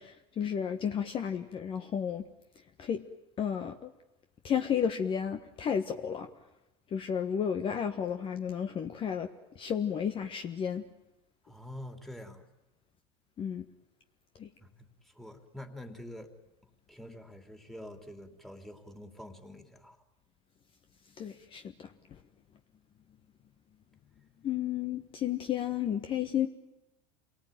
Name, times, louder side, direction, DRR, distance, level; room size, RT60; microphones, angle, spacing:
voice 1, 0.0-2.2 2.8-3.0 3.4-3.9 4.4-6.3 6.9-9.3 9.5-10.8 13.4-13.6 14.4-14.5 21.2-21.9 24.4-26.5, left 8 dB, 40° left, 7 dB, 1.4 m, -32 dB
voice 2, 11.4-12.4 14.6-16.3 16.9-20.0, left 1 dB, ahead, 6 dB, 3.2 m, -46 dB
27.5 x 19.0 x 9.2 m, 0.91 s
supercardioid pair, 100°, 14 cm